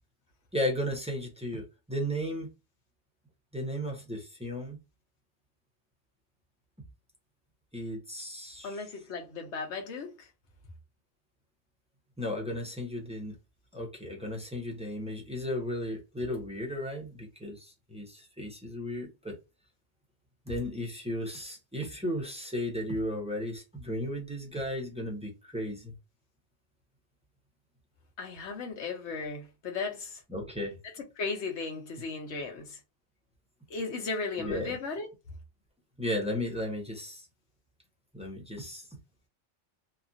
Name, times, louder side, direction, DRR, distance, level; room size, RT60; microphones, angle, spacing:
voice 1, 0.5-2.5 3.5-4.8 7.7-8.8 12.2-13.3 13.7-19.4 20.5-25.9 30.3-30.8 34.4-34.7 36.0-37.2 38.1-38.9, left 1 dB, 5° right, 0.6 m, -35 dB
voice 2, 8.6-10.1 28.2-30.2 31.2-32.8 33.7-35.1, left 4 dB, 70° left, 1.1 m, -36 dB
2.9 x 2.4 x 2.5 m
omnidirectional pair, 1.2 m